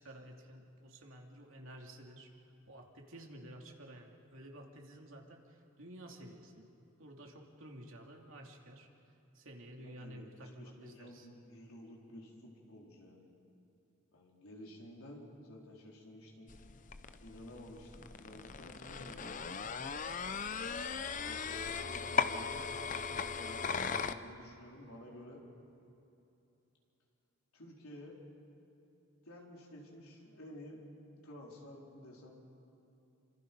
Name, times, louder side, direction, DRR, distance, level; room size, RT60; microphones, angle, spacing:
voice 1, 0.0-2.3 2.7-6.7 7.0-8.9 9.3-11.3, right 1 dB, 65° right, 1 dB, 2.7 m, -52 dB
voice 2, 9.8-13.3 14.1-16.5 17.2-19.6 21.2-25.4 27.5-28.2 29.2-30.8 31.1-32.4, left 1 dB, 80° left, -2 dB, 4.3 m, -52 dB
sound 1, 16.5-24.1, left 5 dB, 35° left, 0.7 m, -38 dB
28.0 x 25.5 x 5.4 m, 2.9 s
head